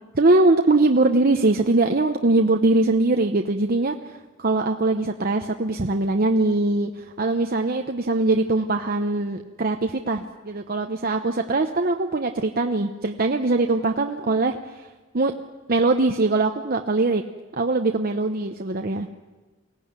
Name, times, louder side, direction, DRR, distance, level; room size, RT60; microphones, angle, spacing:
voice 1, 0.1-4.1 4.4-14.6 15.1-15.3 15.7-17.2 17.5-19.1, right 2 dB, 45° right, 5 dB, 0.9 m, -21 dB
23.0 x 17.0 x 9.6 m, 1.2 s
head